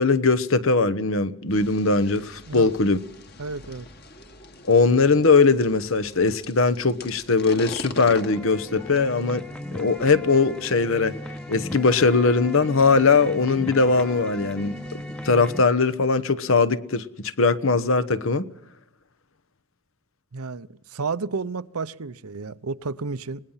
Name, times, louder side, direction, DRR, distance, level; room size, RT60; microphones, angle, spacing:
voice 1, 0.0-3.0 4.6-9.4 9.7-11.1 11.5-18.4, left 4 dB, 65° left, 1.0 m, -20 dB
sound 1, 1.5-15.5, left 2 dB, 45° left, 2.0 m, -44 dB
voice 2, 3.4-3.9 20.3-23.4, right 4 dB, 80° right, 0.8 m, -31 dB
sound 2, 8.0-15.6, left 1 dB, 5° left, 0.9 m, -37 dB
25.0 x 19.5 x 5.7 m
head